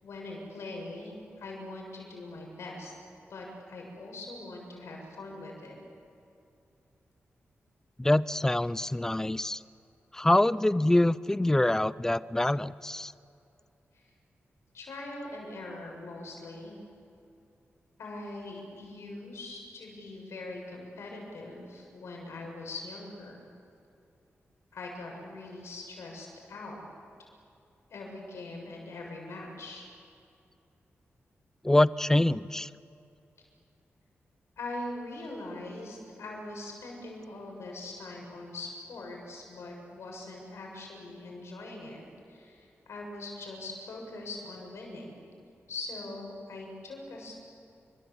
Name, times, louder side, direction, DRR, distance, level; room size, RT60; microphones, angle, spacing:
voice 1, 0.0-2.9 3.3-5.8 13.9-14.0 14.7-16.8 18.0-23.4 24.7-26.8 27.9-29.8 34.6-45.2 45.7-47.4, left 2 dB, 85° left, 0 dB, 7.1 m, -42 dB
voice 2, 8.0-9.6 10.1-13.1 31.6-32.7, left 1 dB, 10° left, 17 dB, 0.6 m, -25 dB
29.0 x 24.5 x 8.1 m, 2.6 s
wide cardioid pair, 100°, 5 cm